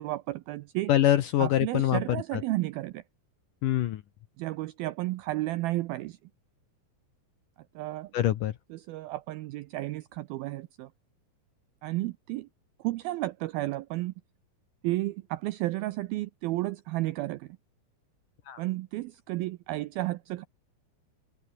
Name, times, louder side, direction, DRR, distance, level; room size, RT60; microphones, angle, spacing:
voice 1, 0.0-0.9 1.4-3.0 4.4-6.2 7.8-8.1 8.7-10.9 11.8-12.5 12.8-14.1 14.8-17.6 18.6-20.5, right 17 dB, 85° right, 2.2 m, -32 dB
voice 2, 0.9-2.0 3.6-4.0 8.1-8.5 18.5-18.6, left 12 dB, 70° left, 2.1 m, -24 dB
omnidirectional pair, 5.0 m